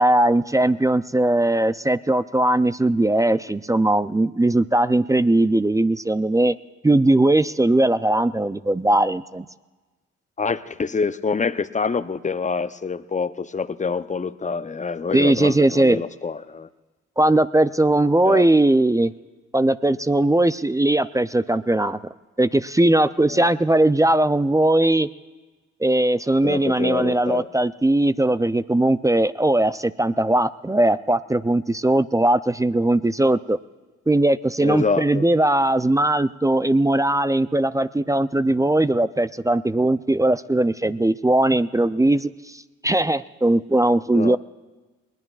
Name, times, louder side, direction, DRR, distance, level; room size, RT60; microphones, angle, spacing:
voice 1, 0.0-6.5 6.8-9.5 15.1-16.0 17.2-19.1 19.5-22.0 22.4-25.1 25.8-33.6 34.1-42.3 42.8-44.4, right 1 dB, 10° right, 15 dB, 0.4 m, -19 dB
voice 2, 10.4-16.7 18.3-18.5 23.3-23.5 26.4-27.5 34.6-35.3 44.1-44.4, left 5 dB, 25° left, 13 dB, 0.7 m, -26 dB
21.0 x 20.0 x 2.4 m, 1.2 s
supercardioid pair, 55°, 31 cm